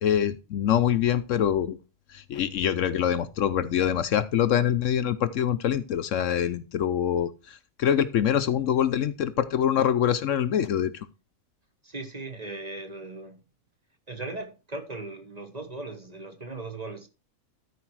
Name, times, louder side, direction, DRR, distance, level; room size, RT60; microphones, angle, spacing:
voice 1, 0.0-1.8 2.1-10.9, left 9 dB, 70° left, 1.0 m, -25 dB
voice 2, 11.8-13.4 14.1-17.1, right 2 dB, 30° right, 1.3 m, -38 dB
13.0 x 5.0 x 4.7 m
omnidirectional pair, 1.4 m